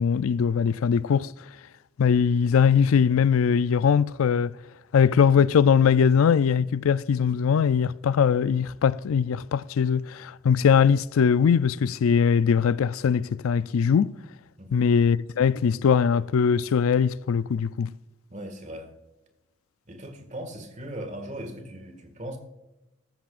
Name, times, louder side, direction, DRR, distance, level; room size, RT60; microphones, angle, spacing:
voice 1, 0.0-1.3 2.0-4.5 4.9-14.1 14.7-17.9, left 7 dB, 85° left, 0.4 m, -21 dB
voice 2, 18.3-18.9 19.9-22.4, equal, 35° right, 1.8 m, -38 dB
15.0 x 13.5 x 2.5 m
head